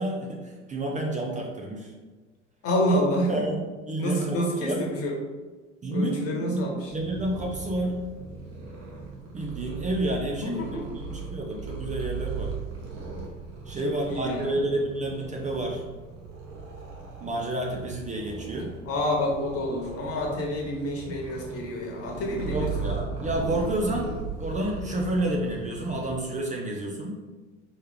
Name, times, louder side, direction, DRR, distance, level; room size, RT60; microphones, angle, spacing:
voice 1, 0.0-1.9 3.3-4.8 5.8-8.0 9.3-12.5 13.7-15.8 17.2-18.8 22.4-27.2, right 1 dB, 20° right, -1 dB, 0.7 m, -30 dB
voice 2, 2.6-3.4 4.0-5.1 5.9-6.9 10.4-10.9 13.8-14.6 18.8-22.9, equal, 40° left, 0 dB, 1.3 m, -28 dB
Purr, 6.9-26.2, right 4 dB, 60° right, 1.3 m, -38 dB
4.4 x 3.2 x 3.5 m, 1.3 s
figure-of-eight pair, 70°, 36 cm